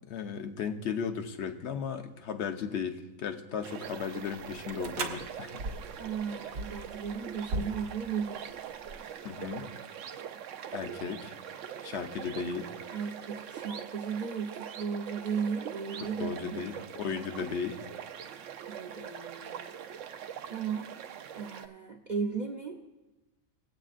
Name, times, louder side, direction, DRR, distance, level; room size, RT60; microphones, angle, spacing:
voice 1, 0.1-5.6 9.2-9.7 10.7-11.3 11.8-12.7 16.0-17.8, left 6 dB, 60° left, 8 dB, 0.9 m, -35 dB
sound 1, 3.6-21.7, right 9 dB, 70° right, 0.9 m, -43 dB
sound 2, 3.8-9.1, right 2 dB, 90° right, 1.3 m, -40 dB
voice 2, 6.0-8.4 12.9-16.7 18.7-19.7 20.5-20.9 21.3-22.8, right 6 dB, 45° right, 0 dB, 0.6 m, -35 dB
19.0 x 8.1 x 2.5 m, 1.1 s
omnidirectional pair, 1.4 m